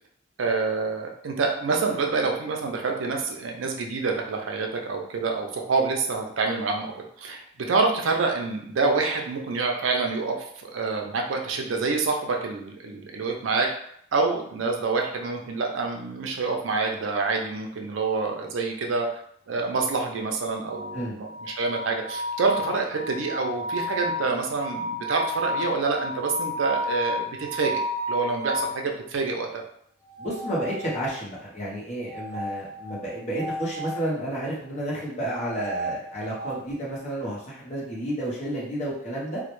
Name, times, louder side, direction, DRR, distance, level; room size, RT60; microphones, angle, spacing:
voice 1, 0.4-6.9 7.2-13.7 14.1-19.1 19.5-27.8 28.1-29.6, right 4 dB, 70° right, 2 dB, 0.4 m, -27 dB
sound 1, 20.7-28.8 30.0-31.3 32.1-34.0 35.2-36.6, equal, 30° right, 0.7 m, -32 dB
voice 2, 30.2-39.4, right 1 dB, 35° left, -5 dB, 0.8 m, -31 dB
2.1 x 2.0 x 3.0 m, 0.67 s
head